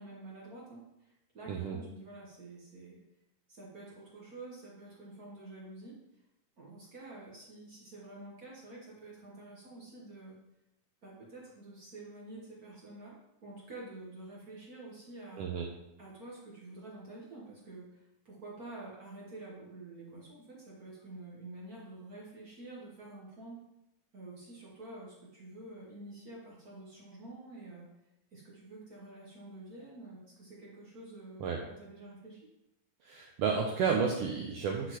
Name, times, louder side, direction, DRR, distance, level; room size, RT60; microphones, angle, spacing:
voice 1, 0.0-3.0 3.5-6.0 6.6-10.4 11.0-13.1 13.4-15.5 16.0-23.6 24.1-27.9 28.3-32.4, right 2 dB, 60° right, -5 dB, 0.9 m, -48 dB
voice 2, 33.0-35.0, right 6 dB, 90° right, 1 dB, 1.3 m, -31 dB
10.0 x 4.0 x 3.0 m, 0.87 s
omnidirectional pair, 3.4 m